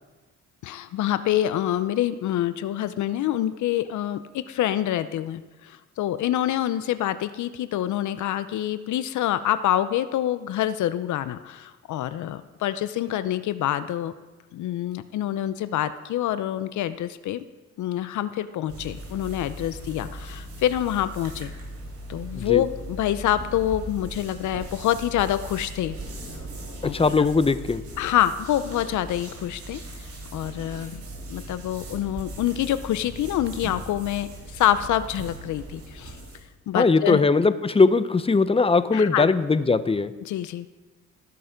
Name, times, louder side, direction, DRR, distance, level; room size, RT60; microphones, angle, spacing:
voice 1, 0.6-14.1 14.5-17.4 17.8-21.5 22.1-26.0 26.8-27.3 28.0-29.8 30.3-31.0 31.3-36.2 36.7-37.2 38.9-39.3 40.2-40.7, left 12 dB, 75° left, 13 dB, 0.6 m, -26 dB
sound 1, 18.7-36.5, right 1 dB, 55° right, 4.1 m, -39 dB
voice 2, 26.9-27.8 36.7-40.1, left 4 dB, 20° left, 13 dB, 0.6 m, -20 dB
17.5 x 6.8 x 5.1 m, 1.2 s
cardioid pair, 90°, 30 cm